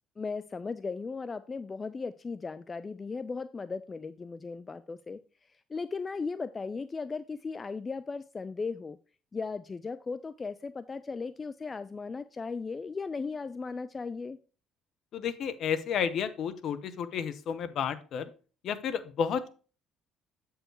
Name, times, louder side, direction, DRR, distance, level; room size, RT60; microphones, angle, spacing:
voice 1, 0.2-5.2 5.5-9.0 9.3-14.4, left 4 dB, 30° left, 14 dB, 0.4 m, -37 dB
voice 2, 15.1-18.3 18.6-19.5, left 7 dB, 55° left, 12 dB, 0.7 m, -31 dB
7.7 x 4.7 x 4.6 m, 0.37 s
hypercardioid pair, 55°, 0 cm